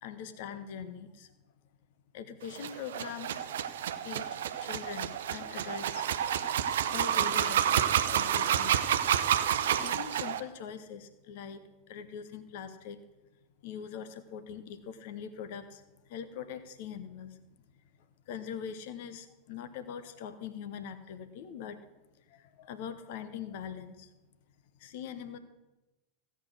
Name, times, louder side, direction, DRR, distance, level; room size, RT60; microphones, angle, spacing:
voice 1, 0.0-1.3 2.1-3.5 4.0-8.8 9.8-13.0 13.6-17.4 18.3-21.8 22.2-24.1 24.7-25.4, left 7 dB, 50° left, 11 dB, 1.1 m, -42 dB
sound 1, 2.5-10.4, right 9 dB, 60° right, 0.7 m, -29 dB
15.5 x 8.0 x 6.4 m, 1.0 s
figure-of-eight pair, 85°, 0 cm